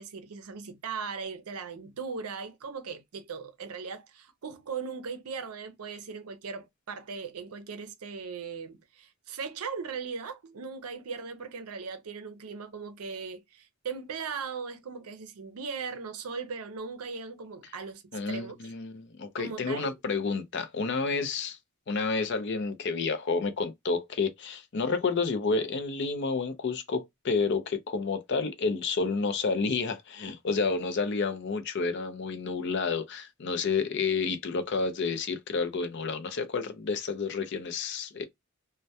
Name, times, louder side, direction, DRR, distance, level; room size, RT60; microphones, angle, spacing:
voice 1, 0.0-18.6 19.4-19.9, right 5 dB, 80° right, 0.5 m, -38 dB
voice 2, 18.1-21.6 21.9-38.2, left 4 dB, 50° left, 0.4 m, -30 dB
2.2 x 2.1 x 2.6 m
head